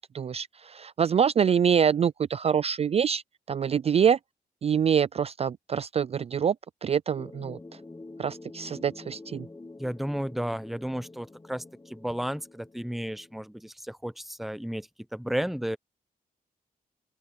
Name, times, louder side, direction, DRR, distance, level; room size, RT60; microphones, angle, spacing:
voice 1, 0.1-3.2 3.5-4.2 4.6-6.6 6.8-7.6 8.2-9.5, right 7 dB, 40° right, 0.3 m, -25 dB
sound 1, 7.2-13.4, left 2 dB, 20° left, 1.1 m, -47 dB
voice 2, 9.8-15.8, equal, ahead, 0.7 m, -33 dB
open air
cardioid pair, 100°, 16 cm